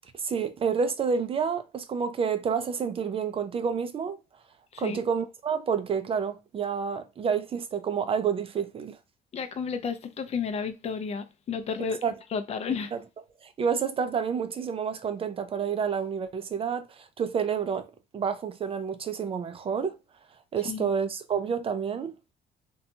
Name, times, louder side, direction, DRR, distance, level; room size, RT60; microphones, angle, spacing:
voice 1, 0.2-4.2 4.8-9.0 12.0-12.1 12.9-13.0 13.4-17.9 18.1-20.0 20.5-22.1, right 6 dB, 35° right, 0.4 m, -29 dB
voice 2, 9.3-12.0 12.3-12.9 20.6-20.9, left 6 dB, 40° left, 0.5 m, -32 dB
2.8 x 2.2 x 2.6 m
cardioid pair, 110°, 17 cm